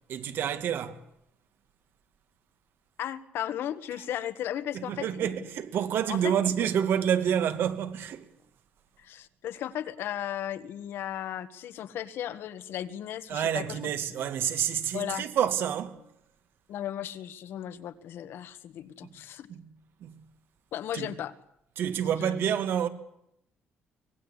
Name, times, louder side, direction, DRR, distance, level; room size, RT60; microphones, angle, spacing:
voice 1, 0.1-1.0 4.7-8.2 13.3-16.0 19.5-19.6 20.0-20.2 20.9-21.1 21.8-22.9, right 9 dB, 65° right, 2.3 m, -28 dB
voice 2, 3.0-5.3 6.1-6.7 9.0-13.8 14.9-15.3 16.7-19.5 20.7-21.4 22.2-22.3, left 11 dB, 70° left, 1.6 m, -36 dB
25.0 x 19.5 x 8.4 m
cardioid pair, 160°, 4 cm